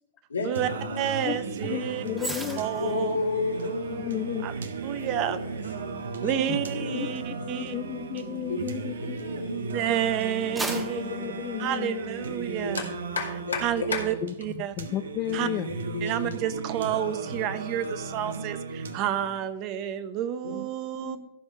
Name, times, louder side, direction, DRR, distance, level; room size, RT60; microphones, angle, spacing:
voice 1, 0.3-0.6 0.9-1.1 1.7-1.9 2.8-4.1 5.3-5.6 6.2-7.7 8.5-8.6 9.2-9.8 12.6-12.8 13.1-14.2 15.9-16.3 20.4-20.6 20.9-21.2, left 4 dB, 90° left, -1 dB, 2.4 m, -32 dB
Singing, 0.5-19.5, right 4 dB, 75° right, 1.0 m, -35 dB
voice 2, 1.0-3.2 4.4-4.5 4.8-5.4 6.2-7.7 9.7-11.0 11.6-12.8 13.6-14.7 15.3-15.5 16.0-21.2, right 10 dB, 40° right, 12 dB, 0.8 m, -30 dB
voice 3, 1.6-2.6 4.0-4.5 6.5-6.6 7.0-7.1 7.6-9.2 10.6-12.0 14.2-15.7, left 14 dB, 35° left, 10 dB, 0.4 m, -33 dB
sound 1, 2.1-9.5 10.0-12.4 12.7-13.0, right 2 dB, 10° right, 1.3 m, -41 dB
14.0 x 5.4 x 5.2 m, 0.85 s
hypercardioid pair, 110°, 0 cm